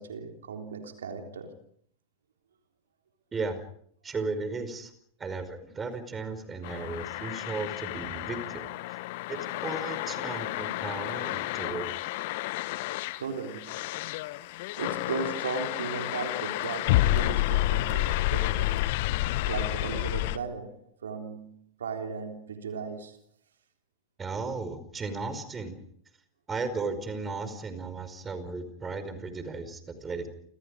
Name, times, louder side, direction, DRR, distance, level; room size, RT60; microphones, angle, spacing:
voice 1, 0.0-1.6 13.2-13.9 14.8-18.8 19.5-23.2, right 5 dB, 70° right, 3.7 m, -36 dB
voice 2, 3.3-3.6 4.0-4.9 5.2-8.7 9.3-11.9 24.2-25.8 26.5-30.3, right 4 dB, 20° right, 5.1 m, -35 dB
sound 1, 6.6-20.4, left 17 dB, 50° left, 1.1 m, -30 dB
30.0 x 26.5 x 5.1 m
figure-of-eight pair, 90°, 0 cm